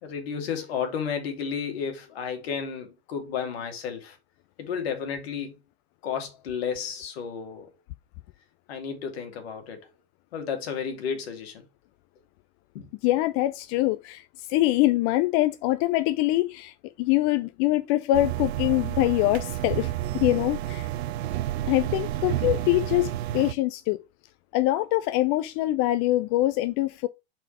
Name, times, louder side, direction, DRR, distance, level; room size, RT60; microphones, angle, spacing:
voice 1, 0.0-4.2 4.6-5.6 6.0-7.7 8.7-9.9 10.3-11.6 12.7-12.9, left 7 dB, 70° left, 2.2 m, -32 dB
voice 2, 13.0-14.2 14.5-20.9 21.7-24.0 24.5-27.1, left 16 dB, 45° left, 0.5 m, -24 dB
sound 1, 18.1-23.5, right 14 dB, 70° right, 0.6 m, -30 dB
5.2 x 4.3 x 4.8 m
hypercardioid pair, 90°, 33 cm